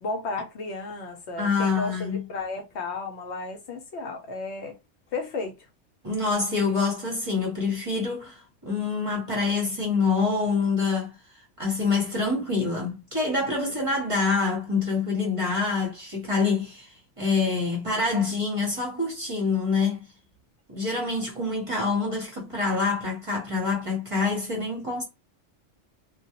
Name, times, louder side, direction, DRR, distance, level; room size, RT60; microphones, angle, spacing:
voice 1, 0.0-4.8 5.1-5.5, left 3 dB, 70° left, 0.9 m, -33 dB
voice 2, 1.4-2.2 6.0-11.1 11.6-20.0 20.7-25.0, left 4 dB, 30° right, 0.8 m, -26 dB
2.3 x 2.1 x 2.8 m
omnidirectional pair, 1.2 m